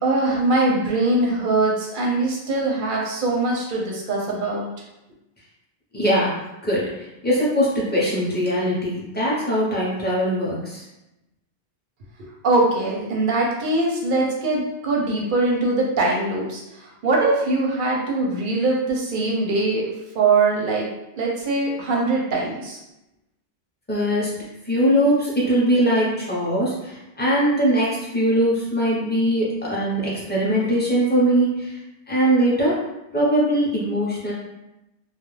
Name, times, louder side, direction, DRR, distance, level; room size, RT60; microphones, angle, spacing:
voice 1, 0.0-4.7 12.2-20.9 21.2-22.8, right 2 dB, 60° right, -2 dB, 0.6 m, -22 dB
voice 2, 5.9-10.8 23.9-24.3 24.6-31.7 32.1-32.8 33.1-34.3, equal, 10° left, -7 dB, 0.5 m, -21 dB
2.3 x 2.0 x 3.1 m, 0.92 s
omnidirectional pair, 1.1 m